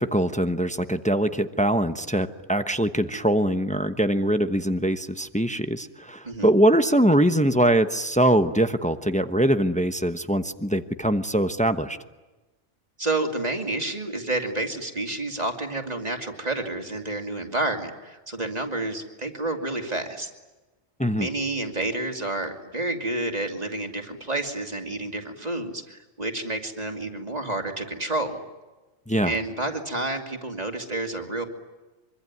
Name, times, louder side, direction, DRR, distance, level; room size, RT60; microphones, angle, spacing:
voice 1, 0.0-12.0 21.0-21.3 29.1-29.3, right 1 dB, 5° left, 9 dB, 1.0 m, -22 dB
voice 2, 13.0-20.3 21.1-28.4 29.2-31.5, right 2 dB, 35° right, 4 dB, 2.8 m, -29 dB
25.0 x 24.5 x 9.7 m, 1.2 s
omnidirectional pair, 1.2 m